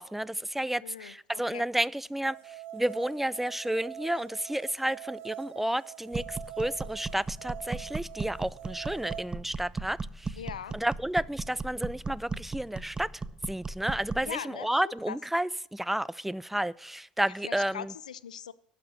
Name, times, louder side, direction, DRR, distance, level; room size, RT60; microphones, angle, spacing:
voice 1, 0.0-10.4 10.7-13.1 13.5-17.9, right 1 dB, 5° right, 0.3 m, -31 dB
voice 2, 0.8-1.1 1.5-1.6 10.4-10.8 14.2-15.2 17.4-18.5, left 9 dB, 90° left, 0.4 m, -40 dB
sound 1, 2.2-9.2, right 11 dB, 65° right, 0.8 m, -44 dB
sound 2, 6.1-14.3, right 3 dB, 20° right, 0.8 m, -37 dB
11.5 x 5.8 x 8.5 m
hypercardioid pair, 70°, 4 cm